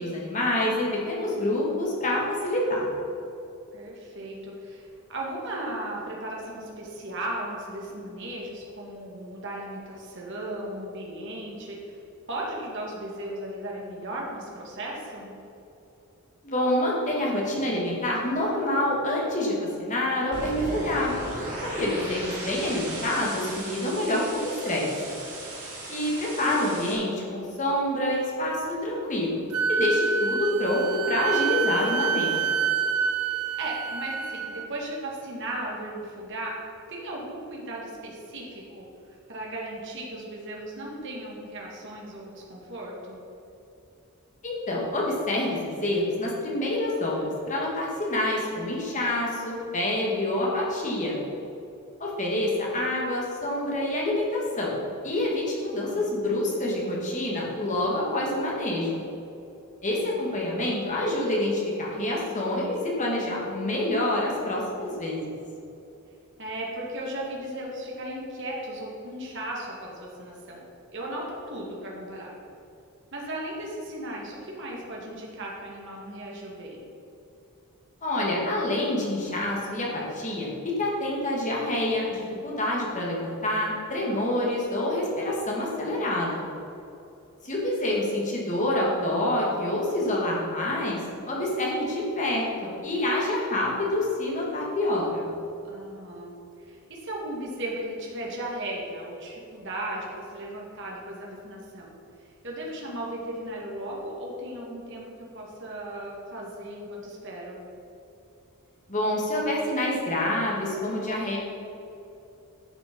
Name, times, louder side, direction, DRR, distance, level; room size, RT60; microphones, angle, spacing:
voice 1, 0.0-2.9 16.4-21.1 21.6-24.9 25.9-29.4 29.7-32.6 44.4-51.2 52.0-59.0 59.8-65.2 78.0-80.5 80.8-86.5 87.4-91.0 91.3-95.3 108.9-111.4, left 1 dB, 35° left, -3 dB, 2.2 m, -27 dB
voice 2, 3.7-12.0 12.3-15.3 33.2-38.9 39.3-43.2 55.9-56.1 66.4-70.6 70.9-72.3 73.1-76.8 95.6-96.3 96.6-102.0 102.4-107.7, right 1 dB, 55° right, -3 dB, 2.0 m, -36 dB
sound 1, 20.3-26.9, right 1 dB, 35° right, 2.7 m, -36 dB
Wind instrument woodwind instrument, 29.5-34.7, right 6 dB, 85° right, 0.6 m, -27 dB
11.0 x 7.0 x 5.4 m, 2.8 s
head